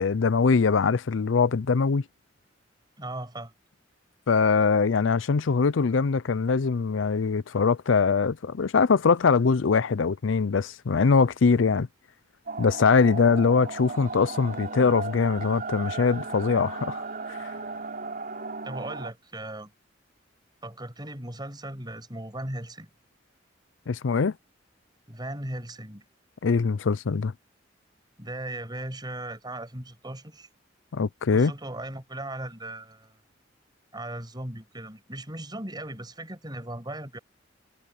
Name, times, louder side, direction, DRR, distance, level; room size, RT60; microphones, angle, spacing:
voice 1, 0.0-2.0 4.3-11.9 12.6-17.0 17.3-17.5 23.9-24.3 26.4-27.3 30.9-31.5, left 5 dB, 80° left, 0.5 m, -22 dB
voice 2, 3.0-3.5 18.6-19.7 20.6-22.9 25.1-26.0 28.2-30.5 31.3-33.1 33.9-37.2, right 1 dB, 25° right, 7.9 m, -37 dB
sound 1, 12.5-19.1, right 4 dB, 50° right, 3.7 m, -35 dB
head